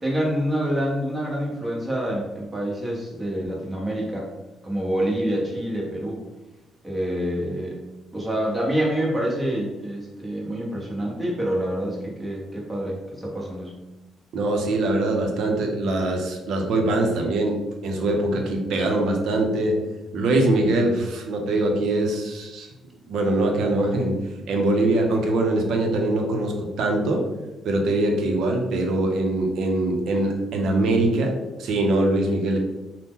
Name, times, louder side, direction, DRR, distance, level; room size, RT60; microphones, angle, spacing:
voice 1, 0.0-4.3 4.6-6.2 6.8-7.8 8.1-13.7, right 1 dB, 20° right, -3 dB, 1.0 m, -27 dB
voice 2, 14.3-19.8 20.1-22.7 23.1-24.2 24.5-27.2 27.6-32.6, right 2 dB, 75° right, 2 dB, 0.6 m, -23 dB
2.7 x 2.1 x 3.6 m, 1.0 s
cardioid pair, 90°, 0 cm